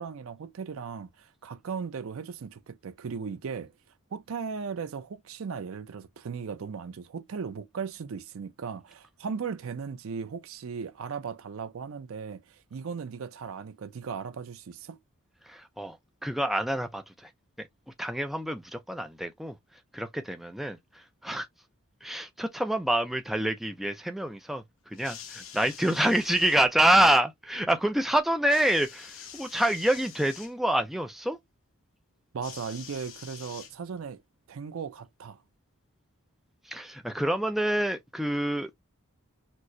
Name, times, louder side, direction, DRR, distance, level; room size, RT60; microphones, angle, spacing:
voice 1, 0.0-3.7 4.1-15.0 32.3-34.2 34.5-35.4, right 6 dB, 75° right, 0.5 m, -37 dB
voice 2, 15.4-16.0 16.2-17.3 18.0-19.6 19.9-21.5 22.0-31.4 36.7-38.7, right 1 dB, ahead, 0.3 m, -27 dB
sound 1, 24.9-26.6 28.5-30.5 32.4-34.1 35.1-35.2, left 8 dB, 70° left, 0.8 m, -46 dB
4.4 x 2.1 x 2.5 m
head